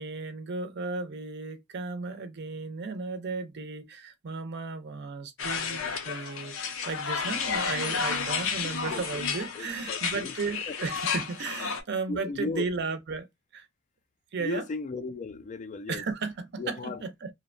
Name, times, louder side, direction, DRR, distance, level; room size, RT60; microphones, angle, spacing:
voice 1, 0.0-5.8 6.0-13.3 13.5-13.7 14.3-14.6 15.9-17.3, right 4 dB, 55° right, 0.5 m, -35 dB
sound 1, 5.4-11.8, left 6 dB, 80° left, 0.6 m, -32 dB
voice 2, 8.6-9.2 9.5-10.3 10.7-10.8 12.1-12.7 14.4-16.0 16.6-17.0, left 4 dB, 35° left, 0.3 m, -36 dB
2.6 x 2.1 x 2.5 m
head